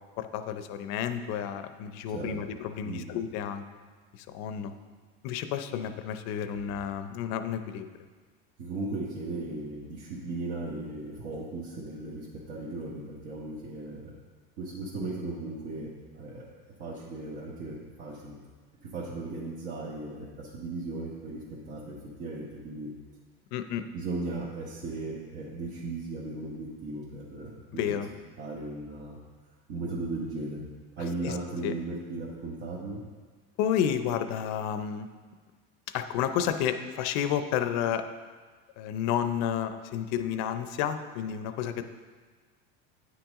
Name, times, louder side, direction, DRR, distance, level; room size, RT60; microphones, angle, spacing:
voice 1, 0.2-3.6 4.1-4.7 5.2-7.9 23.5-23.8 27.7-28.1 31.2-31.4 31.6-31.7 33.6-35.1 35.9-38.0 38.8-41.8, left 9 dB, 60° left, 9 dB, 0.6 m, -31 dB
voice 2, 8.6-14.1 14.6-16.4 16.8-18.4 18.8-22.9 23.9-28.0 28.4-29.2 29.7-30.7 31.0-33.0, right 2 dB, 60° right, -6 dB, 1.5 m, -37 dB
9.4 x 6.1 x 3.7 m, 1.5 s
supercardioid pair, 130°, 30 cm